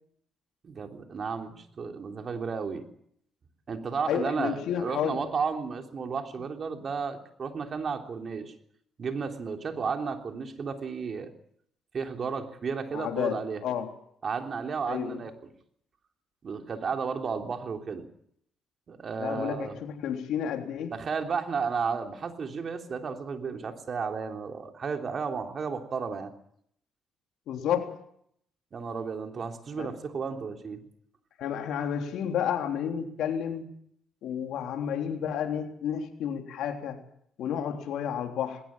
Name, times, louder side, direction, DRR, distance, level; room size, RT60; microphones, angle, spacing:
voice 1, 0.6-2.8 3.7-8.5 9.0-11.3 11.9-13.6 14.2-15.3 16.4-18.0 18.9-19.8 20.9-26.3 28.7-30.8, right 5 dB, 45° right, 4 dB, 3.4 m, -33 dB
voice 2, 4.1-5.2 12.9-13.9 14.9-15.2 19.2-20.9 27.5-28.0 29.8-29.9 31.4-33.7 34.2-37.0 37.4-38.6, left 9 dB, 80° left, 4 dB, 3.4 m, -31 dB
20.0 x 18.0 x 8.9 m, 0.68 s
cardioid pair, 90°, 0 cm